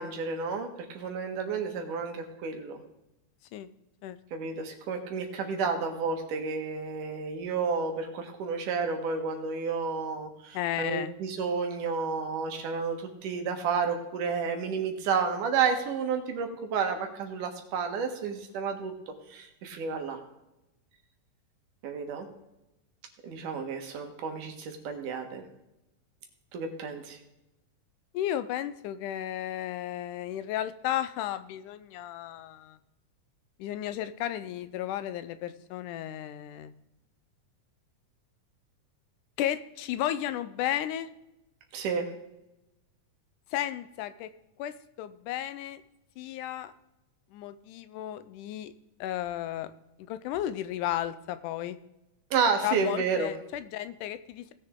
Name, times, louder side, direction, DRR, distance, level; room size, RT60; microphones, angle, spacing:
voice 1, 0.0-2.8 4.3-20.2 21.8-22.3 23.2-25.4 26.5-27.2 41.7-42.1 52.3-53.3, right 5 dB, 80° right, 4 dB, 3.0 m, -31 dB
voice 2, 10.5-11.1 28.1-32.8 33.6-36.7 39.4-41.1 43.5-44.3 44.6-45.8 46.2-46.7 47.3-48.7 49.0-49.7 50.1-51.8 52.6-54.5, left 12 dB, 80° left, 13 dB, 2.1 m, -33 dB
18.5 x 6.7 x 3.7 m, 0.92 s
omnidirectional pair, 3.7 m